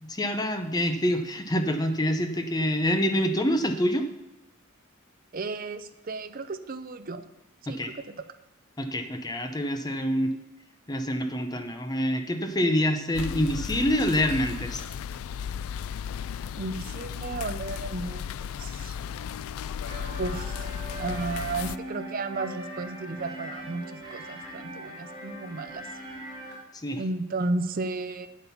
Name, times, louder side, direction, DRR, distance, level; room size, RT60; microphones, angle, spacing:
voice 1, 0.0-4.1 7.7-7.9 8.8-10.3 10.9-14.8 26.7-27.0, equal, 20° left, 7 dB, 0.7 m, -26 dB
voice 2, 5.3-7.2 7.6-8.0 16.6-18.3 18.6-19.0 20.2-20.7 21.0-25.9 27.0-28.3, right 3 dB, 40° right, 11 dB, 0.6 m, -33 dB
sound 1, 13.1-21.8, left 8 dB, 80° left, 0.3 m, -35 dB
sound 2, 19.9-26.5, right 1 dB, 20° right, 3.0 m, -40 dB
8.8 x 8.2 x 5.7 m, 0.93 s
head